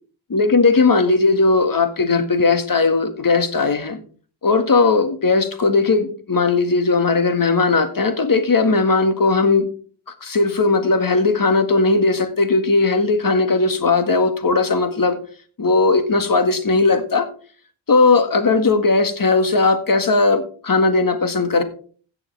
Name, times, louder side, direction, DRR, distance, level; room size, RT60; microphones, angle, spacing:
voice 1, 0.3-4.0 4.4-9.7 10.2-15.2 15.6-17.3 17.9-21.6, left 3 dB, 45° left, 9 dB, 1.9 m, -17 dB
15.5 x 7.0 x 3.4 m, 0.41 s
cardioid pair, 65°, 49 cm